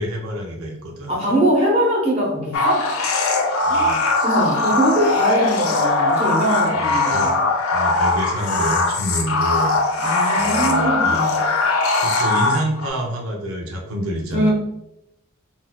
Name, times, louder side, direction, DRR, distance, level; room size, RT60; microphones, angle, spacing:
voice 1, 0.0-1.3 3.6-4.1 6.7-7.4 7.7-9.8 10.3-11.4 12.0-14.5, right 1 dB, 90° right, 1 dB, 0.6 m, -27 dB
voice 2, 1.1-2.9 3.7-7.3 10.0-11.4 14.3-14.5, right 1 dB, 30° right, -4 dB, 0.9 m, -21 dB
sound 1, 2.5-12.9, left 3 dB, 90° left, 0.5 m, -20 dB
3.9 x 2.6 x 2.2 m, 0.84 s
head